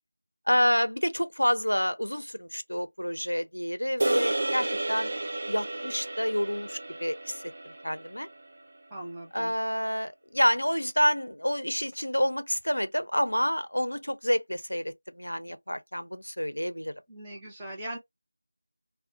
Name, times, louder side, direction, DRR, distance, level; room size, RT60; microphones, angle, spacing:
voice 1, 0.5-5.1 5.5-8.3 9.3-16.9, equal, 90° left, 0.5 m, -28 dB
sound 1, 4.0-8.5, right 2 dB, 45° right, 0.3 m, -32 dB
voice 2, 8.9-9.5 17.1-18.0, right 1 dB, 10° right, 0.6 m, -40 dB
2.6 x 2.1 x 2.7 m
figure-of-eight pair, 170°, 0 cm